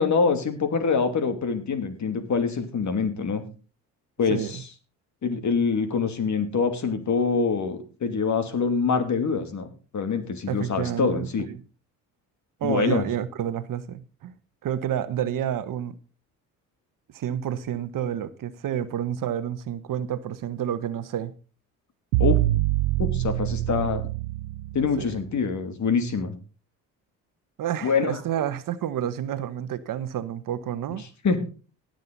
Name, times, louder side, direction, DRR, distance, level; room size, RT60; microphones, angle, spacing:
voice 1, 0.0-3.4 4.2-4.6 5.2-11.5 12.6-13.0 22.2-22.4 23.0-24.0 24.7-26.3 27.8-28.2 31.2-31.4, left 5 dB, 50° left, 2.8 m, -25 dB
voice 2, 4.3-4.6 10.5-11.5 12.6-14.3 14.6-16.0 17.1-21.3 25.0-25.1 27.6-31.0, right 10 dB, 55° right, 1.2 m, -29 dB
sound 1, 22.1-25.2, right 16 dB, 85° right, 0.7 m, -25 dB
17.5 x 7.7 x 4.0 m
supercardioid pair, 60°, 38 cm